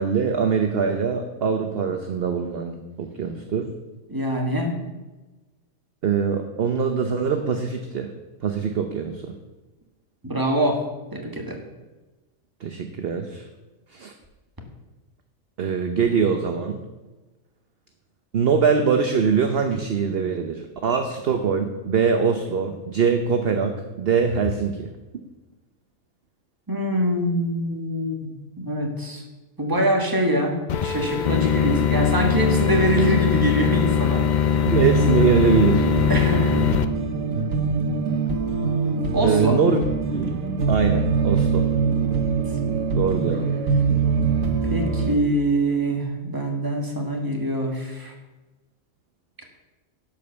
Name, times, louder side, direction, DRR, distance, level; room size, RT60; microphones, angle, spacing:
voice 1, 0.0-3.7 6.0-8.1 8.4-9.3 12.6-13.5 13.9-14.1 15.6-16.8 18.3-24.9 34.7-35.8 39.2-39.8 40.1-40.4 40.7-41.7 43.0-43.5, right 6 dB, 50° right, 6 dB, 0.9 m, -23 dB
voice 2, 4.1-4.8 10.2-10.8 11.1-11.6 26.7-29.2 29.6-34.7 36.1-36.5 39.1-39.6 42.1-42.2 44.6-48.1, right 1 dB, 15° right, 1 dB, 1.6 m, -24 dB
sound 1, 30.7-36.9, left 8 dB, 60° left, 0.4 m, -21 dB
sound 2, 34.7-45.2, right 4 dB, 70° right, 1.4 m, -23 dB
12.0 x 5.3 x 6.9 m, 1.2 s
omnidirectional pair, 1.5 m